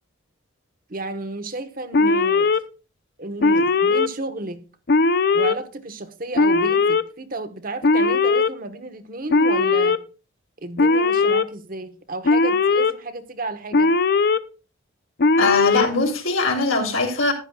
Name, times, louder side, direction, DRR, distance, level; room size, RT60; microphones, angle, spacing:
voice 1, 0.9-2.5 3.2-4.6 5.3-10.0 10.6-13.9, right 2 dB, 45° right, 1.1 m, -32 dB
Alarm, 1.9-2.6 3.4-4.1 4.9-5.5 6.4-7.0 7.8-8.5 9.3-10.0 10.8-11.4 12.2-12.9 13.7-14.4 15.2-15.9, left 3 dB, 50° left, 0.5 m, -18 dB
voice 2, 15.4-17.3, left 3 dB, 80° left, 3.4 m, -21 dB
14.0 x 10.5 x 2.4 m
head